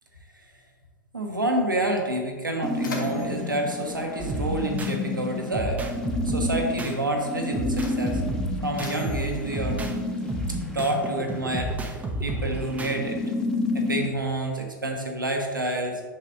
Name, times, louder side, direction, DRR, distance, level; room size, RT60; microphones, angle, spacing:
voice 1, 1.1-5.8 6.2-8.2 8.6-9.8 10.5-13.2 13.7-16.0, right 1 dB, 90° right, 2 dB, 1.1 m, -28 dB
Mechanisms, 2.3-5.0 6.0-6.2 7.0-10.6, left 2 dB, 75° left, 1.4 m, -43 dB
sound 1, 2.6-14.1, left 3 dB, 5° left, 1.0 m, -31 dB
sound 2, 4.2-5.0 5.5-7.0 7.5-10.0 10.3-13.0, right 2 dB, 15° right, 0.7 m, -31 dB
8.1 x 6.4 x 2.6 m, 1.5 s
figure-of-eight pair, 90°, 11 cm